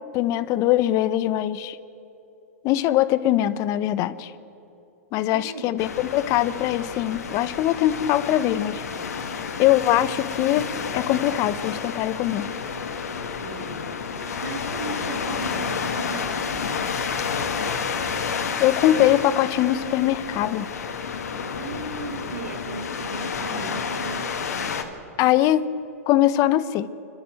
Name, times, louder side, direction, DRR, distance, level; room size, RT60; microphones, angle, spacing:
voice 1, 0.1-1.8 2.6-4.3 5.1-8.8 9.6-10.6 10.9-12.5 18.6-20.7 25.2-25.7 26.1-26.9, left 13 dB, 40° left, 0.9 m, -22 dB
voice 2, 5.3-5.8 13.4-13.9 14.2-16.8 21.6-24.4, right 5 dB, 75° right, 1.9 m, -37 dB
sound 1, 5.8-24.8, left 6 dB, 80° left, 2.3 m, -30 dB
29.5 x 12.5 x 7.8 m
hypercardioid pair, 115°, 8 cm